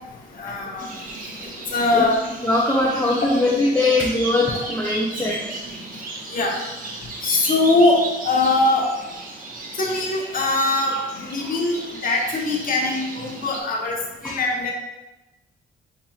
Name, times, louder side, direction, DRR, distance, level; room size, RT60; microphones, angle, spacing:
voice 1, 0.4-0.9 1.4-2.1 6.3-6.6 7.2-8.9 9.8-14.7, left 2 dB, 45° left, -1 dB, 1.0 m, -21 dB
sound 1, 0.8-13.6, right 2 dB, 45° right, 0.7 m, -35 dB
voice 2, 2.4-5.4 11.4-11.6 14.2-14.3, left 2 dB, 10° left, -7 dB, 0.7 m, -21 dB
5.6 x 2.7 x 2.4 m, 1.0 s
cardioid pair, 90°, 20 cm